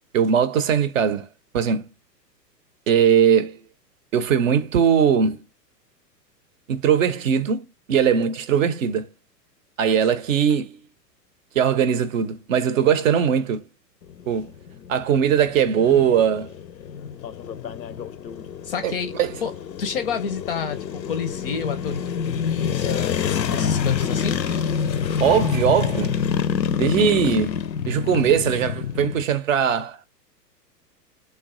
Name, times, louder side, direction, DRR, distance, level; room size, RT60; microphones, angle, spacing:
voice 1, 0.1-1.3 1.5-1.9 2.9-3.6 4.1-5.4 6.7-7.6 7.9-9.1 9.8-10.8 11.5-13.6 14.3-14.5 14.9-16.5 18.8-19.3 25.2-26.1 26.8-27.6 27.9-30.0, right 8 dB, 50° right, 0.6 m, -20 dB
sound 1, 14.0-29.2, left 7 dB, 85° left, 0.6 m, -27 dB
voice 2, 18.6-19.1 19.4-19.5 19.8-24.4, left 6 dB, 35° left, 0.5 m, -29 dB
3.1 x 2.2 x 3.6 m
figure-of-eight pair, 110°, 50 cm